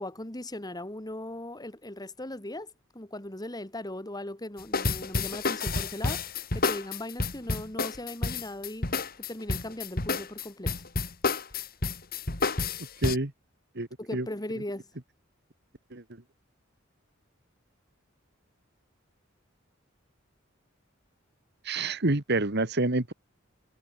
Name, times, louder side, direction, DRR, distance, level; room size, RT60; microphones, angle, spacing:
voice 1, 0.0-6.2 6.5-8.9 9.2-10.7 14.0-14.9, left 1 dB, 20° left, 2.5 m, -38 dB
sound 1, 4.6-13.2, left 3 dB, 50° left, 2.8 m, -29 dB
voice 2, 13.0-13.3 13.8-14.3 15.9-16.2 21.6-23.1, right 2 dB, 55° right, 1.9 m, -28 dB
head